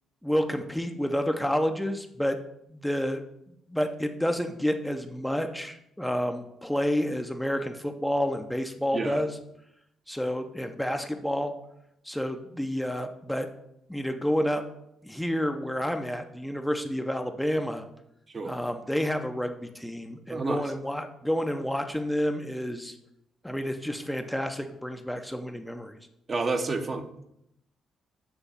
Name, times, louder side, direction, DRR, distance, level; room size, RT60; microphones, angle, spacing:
voice 1, 0.2-2.4 2.7-3.2 3.7-9.3 10.1-11.5 12.1-13.5 13.9-14.6 15.0-17.8 18.5-22.9 23.4-26.0, equal, 5° left, 5 dB, 0.7 m, -29 dB
voice 2, 8.9-9.2 18.3-18.5 20.3-20.6 26.3-27.2, right 3 dB, 35° right, 5 dB, 0.9 m, -30 dB
7.1 x 3.4 x 5.6 m, 0.79 s
figure-of-eight pair, 45°, 0 cm